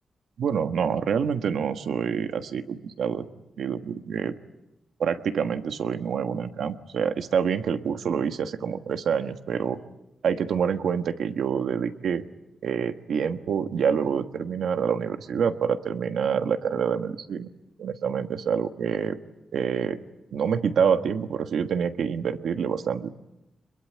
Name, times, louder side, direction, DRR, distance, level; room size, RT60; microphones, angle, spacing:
voice 1, 0.4-3.3 3.6-4.3 5.0-9.8 10.2-12.2 12.6-17.5 17.8-19.2 19.5-20.0 20.3-23.1, right 7 dB, 80° right, 8 dB, 1.4 m, -26 dB
25.5 x 22.0 x 9.3 m, 0.91 s
wide cardioid pair, 145°, 0 cm